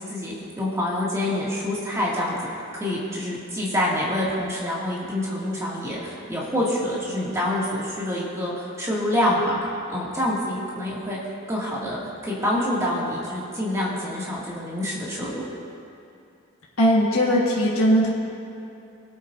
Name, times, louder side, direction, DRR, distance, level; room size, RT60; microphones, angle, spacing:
voice 1, 0.0-2.4 2.7-9.6 9.9-11.2 11.5-15.4, left 1 dB, 15° right, -6 dB, 2.1 m, -26 dB
voice 2, 16.8-18.1, equal, 75° left, -5 dB, 1.5 m, -19 dB
22.0 x 8.5 x 2.6 m, 2.6 s
head